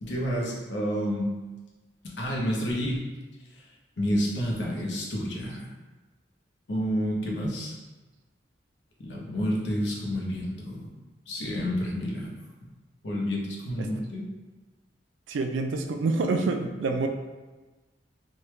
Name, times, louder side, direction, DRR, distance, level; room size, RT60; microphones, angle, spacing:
voice 1, 0.0-1.3 2.2-3.1 4.0-5.7 6.7-7.8 9.0-10.9 11.3-12.3 13.0-14.3, equal, 75° left, -3 dB, 0.7 m, -29 dB
voice 2, 15.3-17.1, right 3 dB, 85° right, 5 dB, 0.4 m, -27 dB
3.2 x 2.2 x 3.1 m, 1.2 s
head